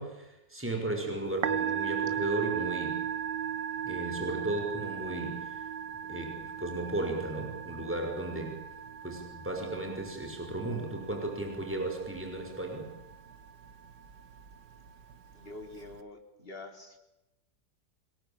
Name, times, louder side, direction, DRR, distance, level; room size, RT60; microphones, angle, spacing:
voice 1, 0.0-3.0 3.8-5.6 6.1-8.7 9.0-12.9, right 2 dB, 5° right, 3 dB, 5.7 m, -35 dB
Musical instrument, 1.3-16.0, right 9 dB, 70° right, 1.9 m, -38 dB
voice 2, 15.3-17.0, left 2 dB, 30° left, 4 dB, 3.7 m, -46 dB
26.5 x 22.0 x 9.0 m, 0.97 s
omnidirectional pair, 2.0 m